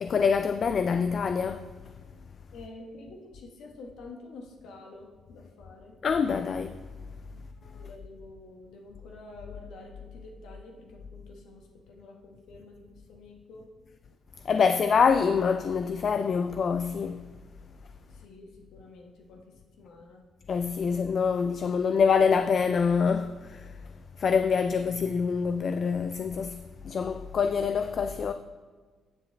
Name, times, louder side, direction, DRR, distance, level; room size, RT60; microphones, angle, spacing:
voice 1, 0.0-1.7 6.0-6.8 14.5-17.2 20.5-23.6 24.2-28.3, left 6 dB, 50° left, 0.3 m, -25 dB
voice 2, 2.5-6.0 7.7-13.7 18.1-20.3, left 2 dB, 80° left, 1.2 m, -48 dB
10.5 x 6.8 x 3.4 m
cardioid pair, 90°, 0 cm